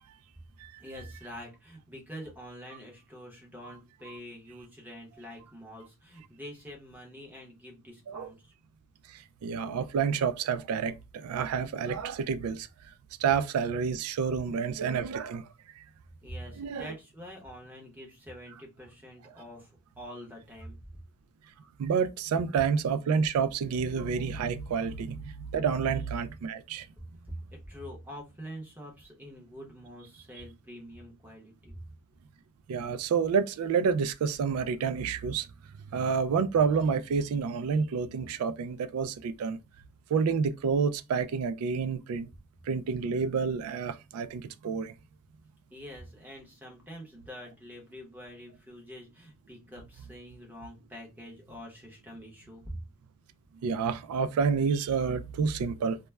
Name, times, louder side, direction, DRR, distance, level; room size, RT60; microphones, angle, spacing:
voice 1, 0.8-8.5 16.2-20.8 27.3-31.8 45.7-52.8, equal, 10° right, 0.8 m, -45 dB
voice 2, 9.1-12.7 13.2-15.5 16.6-16.9 21.8-26.9 32.7-35.5 35.9-39.6 40.1-42.3 42.7-44.9 53.6-56.0, right 6 dB, 75° right, 0.3 m, -29 dB
2.3 x 2.1 x 3.1 m
head